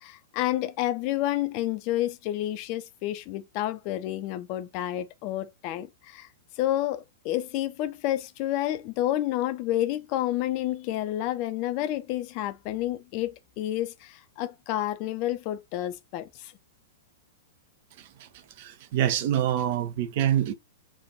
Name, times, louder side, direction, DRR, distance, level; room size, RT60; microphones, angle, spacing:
voice 1, 0.0-6.3 6.6-16.5, left 14 dB, 40° left, 0.7 m, -30 dB
voice 2, 18.0-18.3 18.6-20.5, right 11 dB, 45° right, 0.7 m, -26 dB
4.7 x 2.6 x 3.9 m
figure-of-eight pair, 100°, 0 cm